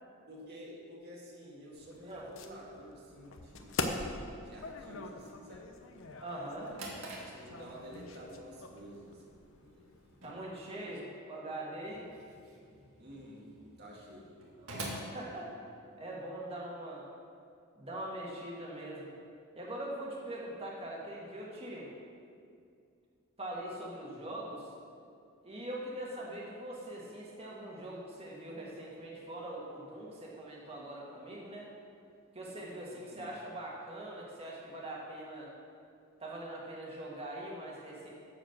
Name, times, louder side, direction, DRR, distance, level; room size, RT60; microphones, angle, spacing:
voice 1, 0.3-3.8 4.4-5.7 6.4-9.4 9.6-9.9 10.7-11.0 13.0-13.5 13.8-14.3 32.9-33.3, equal, 50° right, -4 dB, 2.1 m, -50 dB
sound 1, 1.7-10.2, left 3 dB, 65° left, 0.8 m, -43 dB
voice 2, 6.2-6.7 10.2-12.0 14.6-15.5 16.0-17.1 17.8-19.1 19.6-21.9 23.4-24.7 25.4-31.7 32.3-35.5 36.2-38.1, right 1 dB, 30° right, -4 dB, 1.9 m, -42 dB
Drawer open or close, 6.7-16.1, right 1 dB, 85° right, 2.0 m, -48 dB
11.0 x 5.0 x 7.3 m, 2.4 s
head